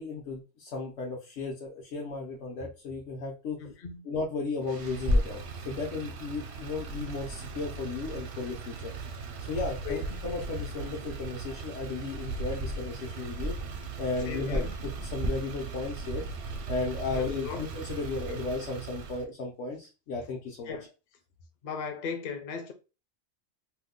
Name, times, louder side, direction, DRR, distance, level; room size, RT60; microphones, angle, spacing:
voice 1, 0.0-3.6 4.0-8.9 9.5-13.6 14.0-14.6 15.0-16.2 16.7-20.8, left 3 dB, 80° left, 1.1 m, -35 dB
voice 2, 3.6-4.0 9.8-10.0 14.3-14.7 17.1-17.6 18.3-18.4 20.7-20.9 21.6-22.7, left 6 dB, 50° left, 0.6 m, -37 dB
Motor vehicle (road), 4.6-19.2, right 4 dB, 70° right, 0.8 m, -39 dB
Clock, 4.8-15.3, left 1 dB, 35° right, 0.5 m, -37 dB
2.7 x 2.1 x 3.6 m
omnidirectional pair, 1.2 m